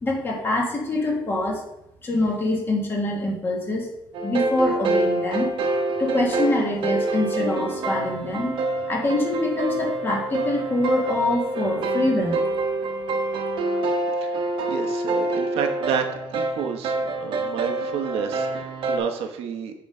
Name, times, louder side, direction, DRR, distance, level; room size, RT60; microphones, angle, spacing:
voice 1, 0.0-1.6 2.0-3.9 4.2-5.5 6.0-8.6 8.9-12.4, left 1 dB, 20° left, -1 dB, 1.6 m, -24 dB
sound 1, 4.1-19.0, right 2 dB, 60° right, 1.1 m, -26 dB
voice 2, 14.2-16.1 16.3-19.7, right 7 dB, 85° right, 4 dB, 1.0 m, -30 dB
8.4 x 3.7 x 5.4 m, 0.83 s
cardioid pair, 175°, 10 cm